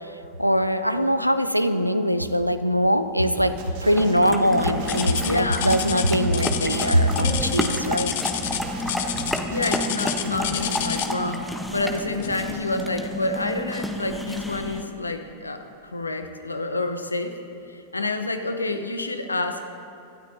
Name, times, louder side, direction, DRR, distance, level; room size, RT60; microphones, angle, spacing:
voice 1, 0.4-3.5 3.8-8.1, equal, 90° right, 11 dB, 0.6 m, -21 dB
sound 1, 3.4-4.2 4.5-8.0 8.4-11.0, right 2 dB, 50° right, 2.4 m, -38 dB
sound 2, 4.0-14.8, left 1 dB, 5° left, 1.2 m, -30 dB
sound 3, 4.9-11.3 12.2-12.5 13.0-13.1 13.8-13.9, left 11 dB, 55° left, 0.9 m, -30 dB
voice 2, 5.2-5.7 9.5-17.4 17.7-19.7, left 2 dB, 80° left, 7 dB, 1.0 m, -28 dB
26.5 x 13.0 x 2.9 m, 2.8 s
figure-of-eight pair, 90°, 0 cm